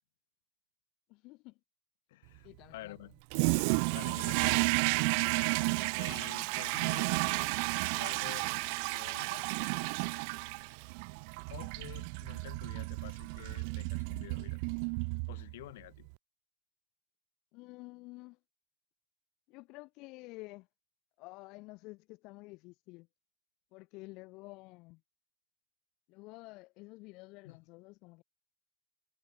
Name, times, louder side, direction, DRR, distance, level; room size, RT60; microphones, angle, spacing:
voice 1, 1.1-1.6 2.4-3.1 17.5-18.4 19.5-20.7 21.2-23.1 23.7-25.0 26.1-28.2, left 23 dB, 65° left, 3.8 m, -50 dB
voice 2, 2.1-3.1 3.9-4.6 5.9-9.5 11.5-14.6 15.3-16.1 27.4-27.6, left 17 dB, 85° left, 4.9 m, -49 dB
Toilet flush, 3.3-15.6, right 37 dB, 70° right, 0.5 m, -32 dB
supercardioid pair, 105°, 0 cm